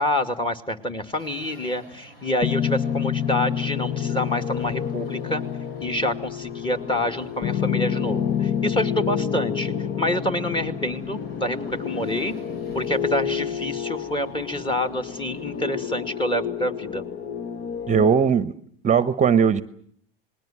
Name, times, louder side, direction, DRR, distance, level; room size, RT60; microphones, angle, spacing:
voice 1, 0.0-5.4 5.8-12.3 12.7-17.0, left 1 dB, 15° left, 8 dB, 2.5 m, -27 dB
sound 1, 1.2-15.8, equal, 85° left, 6.5 m, -51 dB
sound 2, 2.4-18.1, left 8 dB, 40° left, 1.2 m, -28 dB
voice 2, 17.9-18.5 18.8-19.6, right 7 dB, 25° right, 14 dB, 1.0 m, -18 dB
29.0 x 20.5 x 7.5 m, 0.63 s
hypercardioid pair, 90°, 29 cm